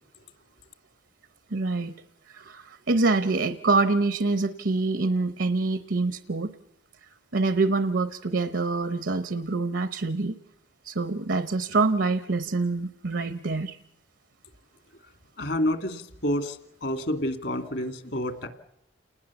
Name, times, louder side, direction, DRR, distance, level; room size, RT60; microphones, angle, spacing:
voice 1, 1.5-1.9 2.3-6.5 7.3-10.3 10.8-13.8, right 3 dB, 70° right, 11 dB, 0.8 m, -25 dB
voice 2, 15.4-18.5, left 1 dB, 65° left, 7 dB, 2.2 m, -29 dB
29.0 x 20.0 x 7.1 m, 0.78 s
head